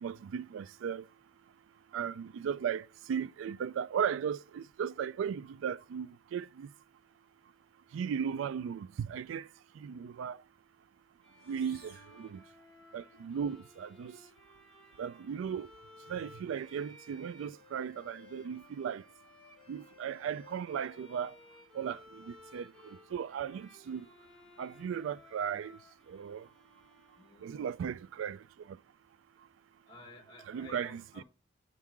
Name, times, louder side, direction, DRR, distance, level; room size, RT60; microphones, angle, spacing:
voice 1, 0.0-1.0 1.9-6.7 7.9-9.5 9.8-10.4 11.5-12.4 12.9-14.2 15.0-15.7 16.1-19.0 19.7-21.3 21.7-24.1 24.6-25.8 26.1-26.5 27.4-28.4 30.5-31.2, right 7 dB, 85° right, 0.3 m, -36 dB
Bowed string instrument, 11.2-27.8, left 2 dB, 5° left, 1.7 m, -58 dB
sound 1, 11.3-13.2, right 3 dB, 55° right, 1.5 m, -60 dB
voice 2, 27.2-27.7 29.9-31.2, left 2 dB, 25° left, 1.3 m, -54 dB
7.2 x 3.7 x 4.5 m
head